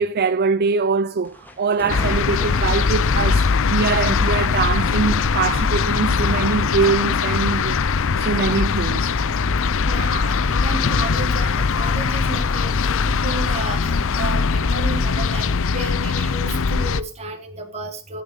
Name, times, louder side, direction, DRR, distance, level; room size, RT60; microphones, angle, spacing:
voice 1, 0.0-7.8 8.2-9.2, right 4 dB, 45° right, 0.5 m, -23 dB
sound 1, 1.2-15.5, left 1 dB, 10° left, 2.0 m, -42 dB
sound 2, 1.9-17.0, left 5 dB, 60° left, 0.7 m, -21 dB
voice 2, 9.8-18.2, right 2 dB, 30° right, 3.1 m, -32 dB
15.0 x 8.4 x 5.2 m
head